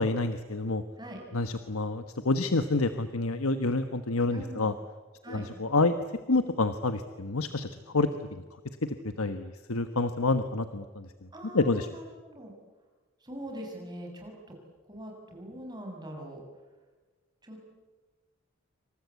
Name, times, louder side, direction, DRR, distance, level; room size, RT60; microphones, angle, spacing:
voice 1, 0.0-0.8 1.3-4.7 5.3-6.0 6.3-7.7 7.9-8.1 8.8-11.1 11.5-11.9, left 3 dB, 85° left, 9 dB, 1.3 m, -28 dB
voice 2, 4.3-4.7 5.2-5.5 11.3-12.5 13.2-14.5 14.9-16.4 17.4-17.8, right 1 dB, 20° right, 1 dB, 6.7 m, -43 dB
28.0 x 25.5 x 8.3 m, 1.3 s
head